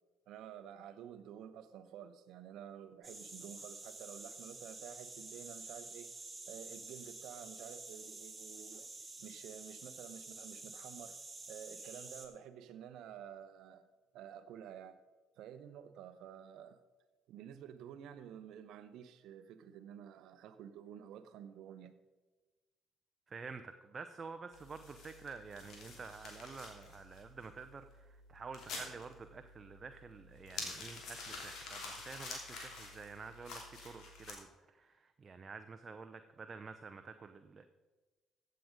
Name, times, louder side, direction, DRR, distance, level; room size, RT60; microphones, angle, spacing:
voice 1, 0.3-6.1 6.5-8.9 9.2-11.2 11.5-13.9 14.1-15.0 15.4-16.8 17.3-21.9, right 9 dB, 70° right, 0.9 m, -51 dB
sound 1, 3.0-12.3, right 3 dB, 20° right, 2.7 m, -49 dB
voice 2, 23.3-37.7, right 4 dB, 35° right, 0.7 m, -49 dB
sound 2, 24.5-34.3, left 3 dB, 65° left, 3.1 m, -48 dB
15.0 x 7.8 x 5.2 m
hypercardioid pair, 55°, 0 cm